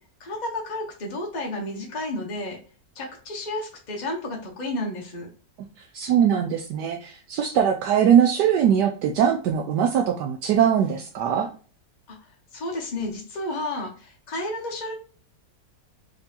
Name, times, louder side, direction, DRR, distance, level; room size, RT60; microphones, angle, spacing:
voice 1, 0.2-2.6 2.9-5.3 12.1-12.2 12.5-14.9, left 1 dB, 50° left, 0 dB, 0.5 m, -31 dB
voice 2, 5.8-11.5, right 8 dB, 75° right, 3 dB, 1.1 m, -21 dB
3.8 x 3.4 x 2.7 m, 0.40 s
omnidirectional pair, 1.9 m